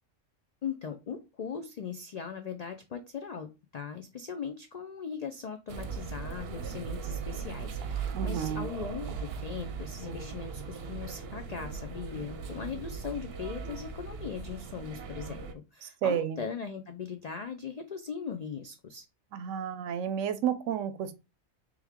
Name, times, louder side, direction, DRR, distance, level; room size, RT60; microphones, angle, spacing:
voice 1, 0.6-19.0, left 6 dB, 80° left, 0.3 m, -39 dB
sound 1, 5.7-15.5, right 6 dB, 60° right, 0.8 m, -38 dB
voice 2, 8.1-8.7 15.8-16.4 19.3-21.1, right 9 dB, 90° right, 1.0 m, -31 dB
3.4 x 3.1 x 3.5 m
omnidirectional pair, 1.3 m